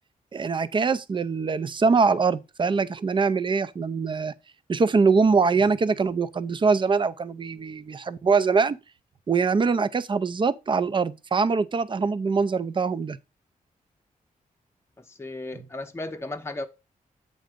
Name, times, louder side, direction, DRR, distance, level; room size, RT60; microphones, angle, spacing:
voice 1, 0.3-4.3 4.7-8.8 9.3-13.2, right 4 dB, 35° right, 0.5 m, -23 dB
voice 2, 15.0-16.7, left 2 dB, 15° left, 0.8 m, -35 dB
7.9 x 3.9 x 5.0 m
cardioid pair, 100°, 15 cm